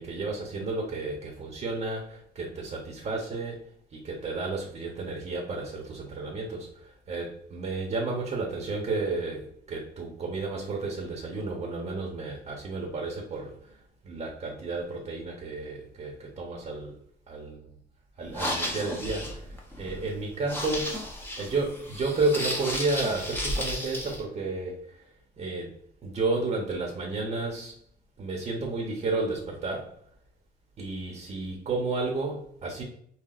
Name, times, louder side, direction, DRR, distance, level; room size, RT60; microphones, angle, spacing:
voice 1, 0.0-3.6 3.9-6.7 7.1-13.5 14.0-16.9 17.3-17.5 18.2-19.4 19.8-21.0 21.4-24.8 25.4-25.7 26.0-27.7 28.2-29.9 30.8-32.8, right 3 dB, 40° right, -1 dB, 1.0 m, -32 dB
sound 1, 18.2-24.2, left 1 dB, 10° left, 0.8 m, -33 dB
5.8 x 2.3 x 2.4 m, 0.64 s
cardioid pair, 115°, 18 cm